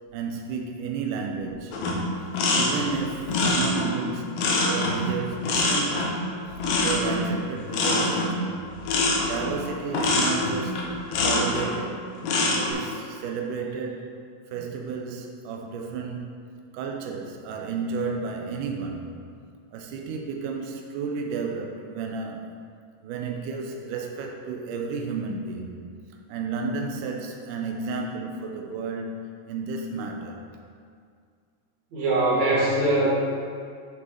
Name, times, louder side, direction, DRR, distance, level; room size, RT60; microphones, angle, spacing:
voice 1, 0.1-1.8 2.5-6.2 6.8-8.6 9.2-12.1 12.6-14.2 14.5-16.4 16.7-19.2 19.7-22.6 23.0-25.8 26.3-30.5, right 5 dB, 85° right, 1 dB, 1.8 m, -32 dB
sound 1, 1.7-11.7 12.2-12.7, left 2 dB, 75° left, 2.9 m, -25 dB
voice 2, 31.9-33.1, right 2 dB, 55° right, -6 dB, 2.9 m, -22 dB
10.5 x 6.7 x 3.7 m, 2.2 s
omnidirectional pair, 4.5 m